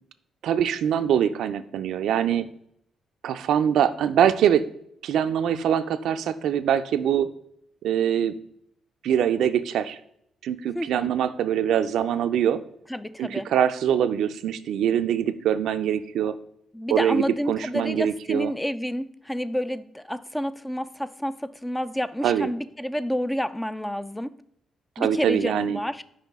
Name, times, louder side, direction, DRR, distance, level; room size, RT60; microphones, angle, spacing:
voice 1, 0.4-2.5 3.2-4.6 5.0-7.3 7.8-8.3 9.0-10.0 10.4-12.6 13.2-16.4 16.9-18.5 22.2-22.5 25.0-25.8, right 9 dB, 75° right, 11 dB, 0.4 m, -23 dB
voice 2, 10.7-11.1 12.9-13.5 16.7-24.4 25.0-26.0, equal, 5° left, 14 dB, 0.3 m, -29 dB
5.7 x 5.0 x 3.5 m, 0.72 s
cardioid pair, 90°, 0 cm